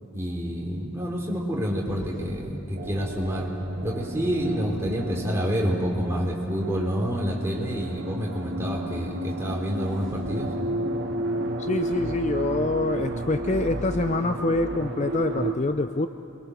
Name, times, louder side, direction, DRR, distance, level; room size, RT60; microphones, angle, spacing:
voice 1, 0.1-3.5 3.8-10.5, equal, 10° right, -2 dB, 3.5 m, -28 dB
sound 1, 1.9-6.0 9.3-14.6, equal, 5° left, 4.5 m, -43 dB
sound 2, 2.7-15.5, right 1 dB, 50° right, 1.8 m, -32 dB
voice 2, 11.6-16.1, left 2 dB, 30° left, 8 dB, 0.5 m, -26 dB
28.5 x 23.0 x 6.5 m, 2.7 s
head